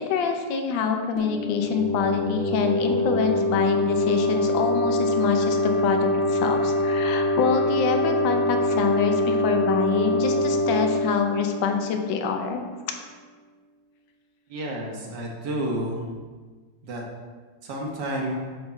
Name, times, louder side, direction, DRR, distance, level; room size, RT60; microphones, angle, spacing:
voice 1, 0.0-12.6, left 6 dB, 75° left, 5 dB, 1.4 m, -26 dB
sound 1, 1.2-12.6, left 1 dB, ahead, 1.4 m, -24 dB
voice 2, 14.5-16.1 16.8-17.0 17.6-18.4, right 1 dB, 65° right, -1 dB, 1.5 m, -30 dB
7.1 x 3.5 x 4.0 m, 1.4 s
omnidirectional pair, 2.1 m